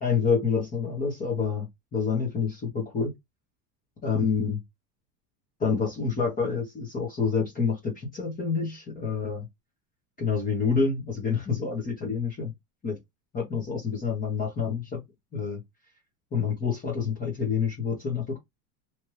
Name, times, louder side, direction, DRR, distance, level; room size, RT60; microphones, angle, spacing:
voice 1, 0.0-3.1 4.0-4.6 5.6-9.5 10.2-12.5 12.8-13.0 13.3-15.0 15.3-15.6 16.3-18.4, left 5 dB, 20° left, 1.0 m, -27 dB
3.0 x 2.6 x 3.1 m
supercardioid pair, 155°, 45 cm